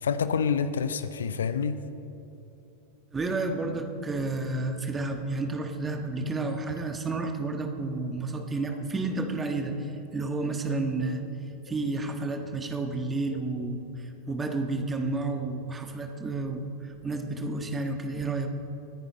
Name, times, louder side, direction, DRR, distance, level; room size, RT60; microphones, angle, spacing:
voice 1, 0.0-1.8 8.4-8.5 10.7-10.8 13.3-13.4, left 6 dB, 65° left, 12 dB, 0.5 m, -28 dB
voice 2, 3.1-11.2 11.7-18.5, right 3 dB, 15° right, 5 dB, 1.4 m, -31 dB
24.5 x 9.9 x 4.1 m, 2.9 s
figure-of-eight pair, 90°, 0 cm